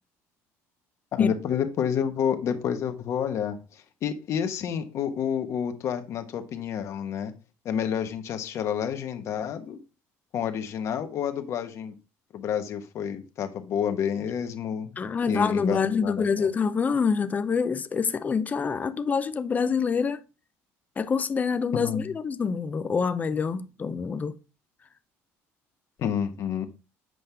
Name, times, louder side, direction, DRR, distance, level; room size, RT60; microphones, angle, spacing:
voice 1, 1.1-7.3 7.6-9.8 10.3-11.9 12.3-15.0 15.3-16.5 21.7-22.0 26.0-26.7, left 8 dB, 55° left, 1.2 m, -29 dB
voice 2, 15.0-20.2 21.0-24.4, left 5 dB, 25° left, 0.6 m, -26 dB
7.9 x 5.3 x 3.4 m
cardioid pair, 110°, 6 cm